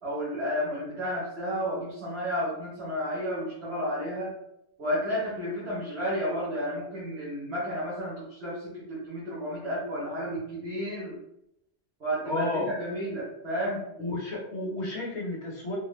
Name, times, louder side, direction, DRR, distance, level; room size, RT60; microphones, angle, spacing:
voice 1, 0.0-4.3 4.8-11.2 12.0-13.8, equal, 70° right, -8 dB, 1.4 m, -32 dB
voice 2, 12.2-12.7 14.0-15.8, left 2 dB, 80° left, -3 dB, 1.4 m, -32 dB
4.0 x 2.2 x 3.1 m, 0.79 s
omnidirectional pair, 1.1 m